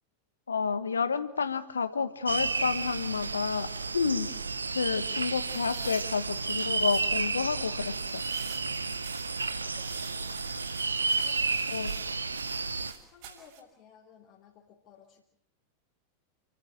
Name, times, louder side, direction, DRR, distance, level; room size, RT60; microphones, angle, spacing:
voice 1, 0.5-3.7 3.9-4.3 4.7-8.2 11.7-11.9, left 5 dB, 75° left, 12 dB, 1.5 m, -30 dB
sound 1, 2.3-12.9, right 4 dB, 80° right, 1.1 m, -32 dB
sound 2, 5.3-13.6, right 8 dB, 50° right, 6.2 m, -49 dB
voice 2, 8.7-10.6 11.1-11.8 12.7-15.2, left 7 dB, 45° left, -2 dB, 4.0 m, -58 dB
29.0 x 14.5 x 9.0 m, 0.76 s
figure-of-eight pair, 90°, 0 cm